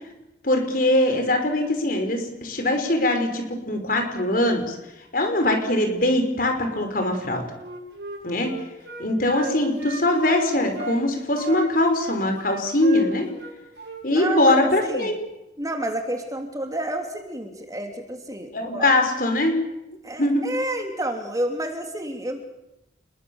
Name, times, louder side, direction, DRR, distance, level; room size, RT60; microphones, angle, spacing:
voice 1, 0.4-4.8 5.1-7.4 8.2-8.5 9.0-13.3 14.0-15.1 18.5-19.6 20.2-20.4, left 1 dB, 50° left, 5 dB, 5.1 m, -22 dB
Wind instrument woodwind instrument, 7.6-11.0 11.4-14.4 14.7-15.0, right 2 dB, 70° right, 6.9 m, -36 dB
voice 2, 14.1-15.2 15.6-18.9 20.0-22.6, right 1 dB, 20° right, 4 dB, 2.9 m, -30 dB
29.5 x 21.5 x 7.1 m, 0.94 s
head